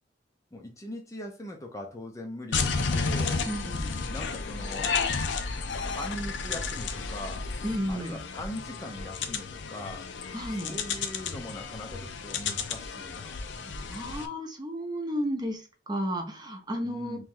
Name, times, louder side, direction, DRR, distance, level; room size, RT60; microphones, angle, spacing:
voice 1, 0.5-3.4 4.1-5.0 5.8-7.5 7.9-10.1 10.5-14.1 16.8-17.2, left 1 dB, 15° left, 0.5 m, -41 dB
sound 1, 2.5-14.3, left 4 dB, 70° left, 0.5 m, -32 dB
voice 2, 3.4-4.0 7.6-8.2 10.3-10.7 13.9-17.2, equal, 20° right, 0.7 m, -33 dB
3.1 x 3.0 x 3.6 m
head